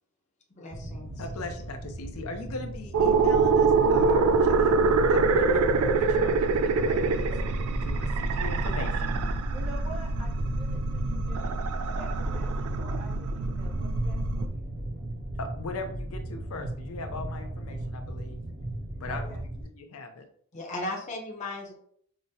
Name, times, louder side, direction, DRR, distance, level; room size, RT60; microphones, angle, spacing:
voice 1, 0.5-1.1 20.5-21.7, left 2 dB, 35° left, 0 dB, 0.6 m, -36 dB
sound 1, 0.7-19.6, right 1 dB, 50° right, 1.4 m, -37 dB
voice 2, 1.2-7.3 7.8-9.1 15.4-18.4 19.0-19.4 19.6-20.3, left 3 dB, 80° left, 6 dB, 0.5 m, -40 dB
sound 2, 2.9-14.5, right 4 dB, 90° right, 0.3 m, -25 dB
voice 3, 9.5-11.6 11.8-14.7 19.1-19.4, right 2 dB, 30° right, -4 dB, 0.6 m, -46 dB
5.0 x 2.1 x 2.7 m, 0.63 s
head